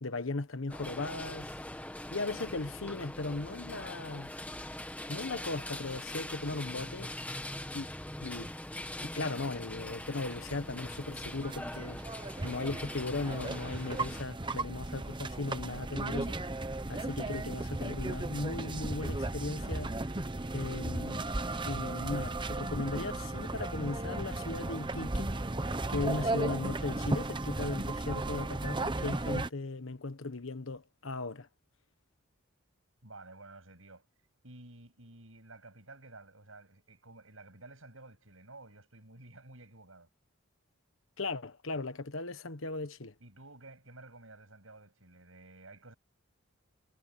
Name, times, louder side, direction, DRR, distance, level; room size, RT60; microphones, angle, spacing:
voice 1, 0.0-1.5 2.1-4.3 5.1-7.1 7.7-7.9 8.2-8.6 9.0-12.0 12.4-16.4 16.9-20.0 20.5-21.3 21.6-25.3 25.9-31.5 41.2-43.1, left 3 dB, 70° left, 1.3 m, -37 dB
sound 1, 0.7-14.2, left 1 dB, 5° left, 1.6 m, -42 dB
sound 2, 9.9-29.5, right 2 dB, 25° right, 1.0 m, -36 dB
voice 2, 33.0-40.1 43.2-45.9, right 2 dB, 75° right, 7.6 m, -53 dB
head